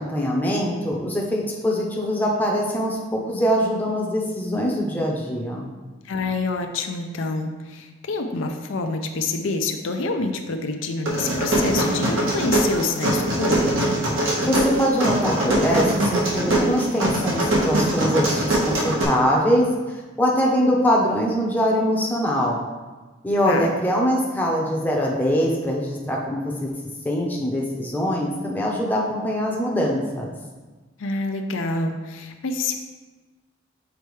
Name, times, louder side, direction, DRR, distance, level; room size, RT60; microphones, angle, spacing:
voice 1, 0.0-5.7 14.5-19.7 20.2-22.6 23.2-26.7 27.0-30.3, equal, 10° left, -3 dB, 0.7 m, -23 dB
voice 2, 6.0-13.9 23.4-23.7 31.0-32.8, left 3 dB, 70° left, 5 dB, 0.5 m, -27 dB
sound 1, 11.1-19.0, right 1 dB, 70° right, 1.3 m, -22 dB
6.9 x 4.4 x 3.2 m, 1.3 s
head